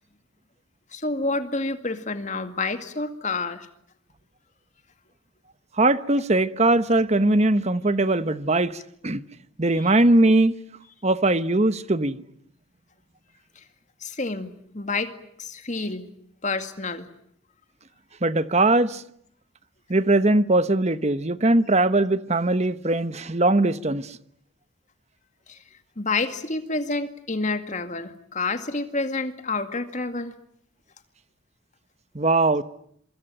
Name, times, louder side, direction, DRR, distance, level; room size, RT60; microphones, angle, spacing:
voice 1, 0.9-3.7 9.8-9.9 13.6-13.7 14.0-15.1 15.4-16.1 16.4-17.1 25.5-25.6 26.0-30.3, left 3 dB, 35° left, 2.2 m, -29 dB
voice 2, 5.8-9.2 9.6-10.6 11.0-12.2 18.2-19.0 19.9-24.2 32.1-32.6, right 2 dB, 30° right, 1.0 m, -20 dB
26.0 x 25.0 x 9.1 m
head